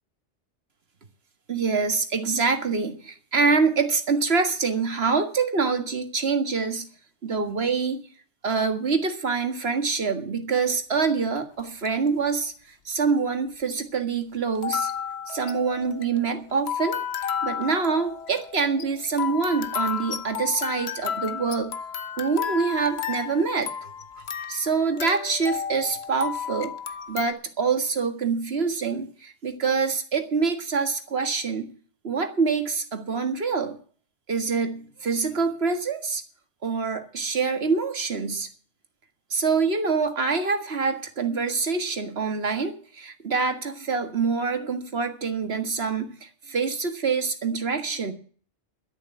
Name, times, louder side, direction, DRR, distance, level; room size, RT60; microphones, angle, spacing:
voice 1, 1.5-6.9 7.2-8.0 8.4-12.5 12.9-14.9 15.3-17.0 17.4-21.8 22.2-23.9 24.5-26.7 27.1-31.7 32.0-33.8 34.3-36.2 36.6-38.5 39.3-48.1, right 5 dB, 55° right, 8 dB, 1.9 m, -25 dB
sound 1, 11.6-12.1 12.9-13.0 14.6-27.3, left 8 dB, 60° left, 1.2 m, -32 dB
12.5 x 7.3 x 10.0 m, 0.44 s
omnidirectional pair, 1.3 m